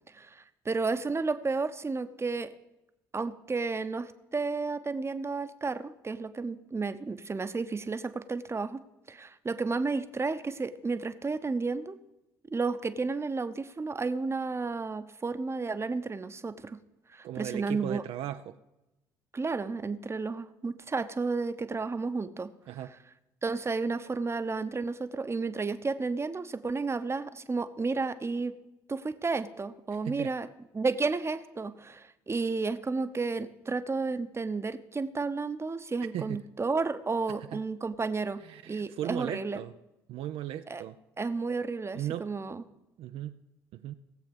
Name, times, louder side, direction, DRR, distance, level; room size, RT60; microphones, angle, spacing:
voice 1, 0.1-2.5 3.1-8.8 9.1-12.0 12.5-16.8 17.1-18.0 19.3-22.5 23.4-28.6 28.9-30.5 30.7-39.6 40.7-40.8 41.2-42.6, right 4 dB, 25° right, 12 dB, 0.9 m, -32 dB
voice 2, 17.2-18.6 22.7-22.9 29.9-30.3 36.1-36.4 37.4-37.6 38.4-39.7 40.1-41.0 41.9-42.3 43.0-43.4 43.7-43.9, right 12 dB, 60° right, 9 dB, 0.5 m, -37 dB
17.5 x 7.7 x 5.3 m, 0.97 s
hypercardioid pair, 50°, 11 cm